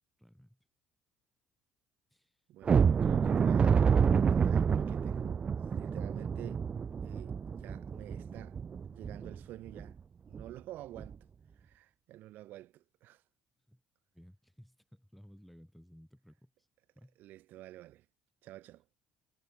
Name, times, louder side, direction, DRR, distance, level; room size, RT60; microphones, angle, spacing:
voice 1, 0.2-0.6 2.1-2.4 3.0-4.2 4.8-5.0 13.7-13.8 14.1-16.7 17.0-17.2, equal, ahead, 5.3 m, -57 dB
voice 2, 2.5-3.9 4.3-6.6 7.0-8.6 8.9-10.0 10.3-11.3 11.6-13.2 17.2-18.1 18.4-18.8, right 15 dB, 70° right, 2.7 m, -50 dB
sound 1, 2.7-9.4 9.8-9.9 10.3-10.5 11.0-11.1, right 6 dB, 35° right, 0.3 m, -28 dB
supercardioid pair, 70°, 3 cm